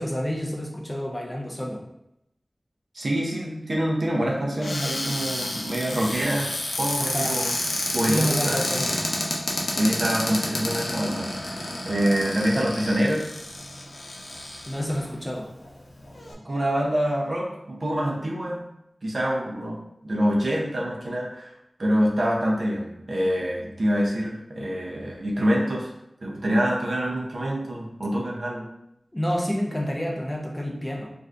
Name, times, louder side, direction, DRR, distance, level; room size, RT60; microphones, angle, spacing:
voice 1, 0.0-1.8 7.0-7.4 8.1-9.0 14.7-15.5 29.1-31.1, equal, 15° left, 0 dB, 0.5 m, -29 dB
voice 2, 2.9-6.5 6.8-7.5 7.9-8.6 9.7-13.3 16.4-18.6 19.0-21.5 21.8-25.9 26.2-28.7, equal, 60° right, -2 dB, 0.6 m, -26 dB
Cupboard open or close, 4.6-15.0 15.6-15.7 16.0-16.3, left 1 dB, 85° left, 0.6 m, -29 dB
2.5 x 2.4 x 3.3 m, 0.83 s
wide cardioid pair, 80°, 0 cm